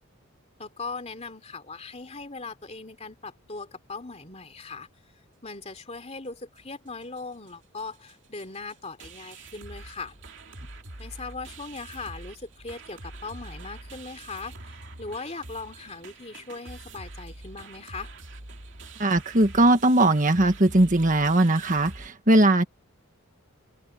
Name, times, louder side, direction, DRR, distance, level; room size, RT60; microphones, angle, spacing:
voice 1, 0.6-4.9 5.4-10.1 11.0-18.1, left 3 dB, 30° left, 3.1 m, -39 dB
sound 1, 6.6-6.7 6.9-7.2 7.5-7.6 7.8-22.1, right 2 dB, 55° right, 2.8 m, -45 dB
voice 2, 19.0-22.7, right 1 dB, 35° right, 1.5 m, -20 dB
open air
head